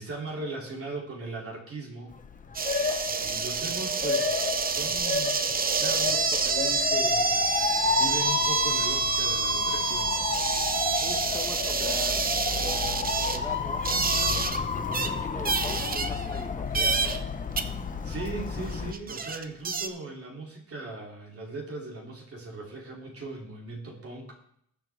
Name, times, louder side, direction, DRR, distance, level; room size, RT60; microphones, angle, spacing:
voice 1, 0.0-2.2 3.1-10.2 18.0-24.3, right 3 dB, 50° right, -2 dB, 3.0 m, -39 dB
Motor vehicle (road) / Siren, 2.1-18.9, left 5 dB, 25° left, 0.9 m, -31 dB
sound 1, 2.5-14.6 14.9-15.1 15.4-16.4 16.7-17.2 17.6-17.7 18.6-18.7 18.9-19.9, right 5 dB, 30° right, 0.7 m, -28 dB
voice 2, 11.0-17.1, left 2 dB, 10° left, 2 dB, 1.4 m, -42 dB
20.0 x 7.4 x 3.5 m, 0.71 s
wide cardioid pair, 155°, 30 cm